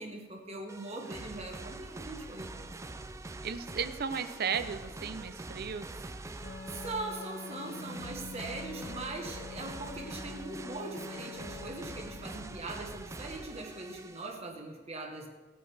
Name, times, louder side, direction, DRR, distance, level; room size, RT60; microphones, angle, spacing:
voice 1, 0.0-2.7 6.3-15.3, right 2 dB, 35° right, 2 dB, 1.2 m, -41 dB
sound 1, 0.7-14.4, right 2 dB, 15° right, 0.4 m, -44 dB
voice 2, 3.4-6.1, right 6 dB, 55° right, 11 dB, 0.6 m, -35 dB
Wind instrument woodwind instrument, 6.4-12.5, left 4 dB, 70° left, 0.9 m, -46 dB
16.5 x 8.8 x 3.3 m, 1.3 s
head